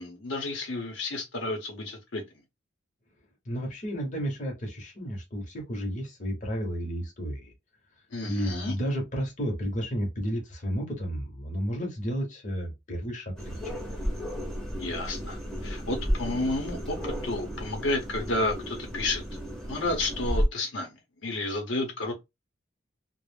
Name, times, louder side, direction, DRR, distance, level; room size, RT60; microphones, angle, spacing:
voice 1, 0.0-2.2 8.1-8.7 14.8-19.2 19.7-20.9 21.2-22.1, left 2 dB, 70° left, 0.7 m, -31 dB
voice 2, 3.5-7.5 8.3-13.7, equal, 40° left, 0.8 m, -32 dB
sound 1, 13.4-20.4, equal, ahead, 0.7 m, -33 dB
2.4 x 2.0 x 3.2 m
head